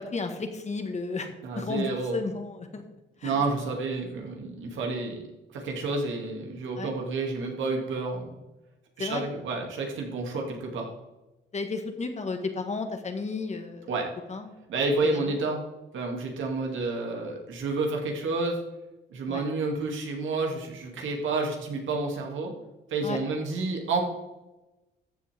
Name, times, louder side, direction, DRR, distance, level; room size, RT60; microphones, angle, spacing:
voice 1, 0.0-1.3 1.5-2.8 3.2-3.3 6.8-6.9 9.0-9.2 11.5-13.9 14.3-14.5 19.3-19.4 23.0-23.2, left 4 dB, 35° left, 6 dB, 1.7 m, -33 dB
voice 2, 1.4-2.2 3.2-5.2 5.5-8.4 9.0-10.9 13.9-14.1 14.7-15.6 15.9-18.6 19.1-22.5 22.9-24.0, right 3 dB, 75° right, 1 dB, 2.6 m, -30 dB
14.0 x 7.5 x 3.6 m, 1.0 s
cardioid pair, 90°, 20 cm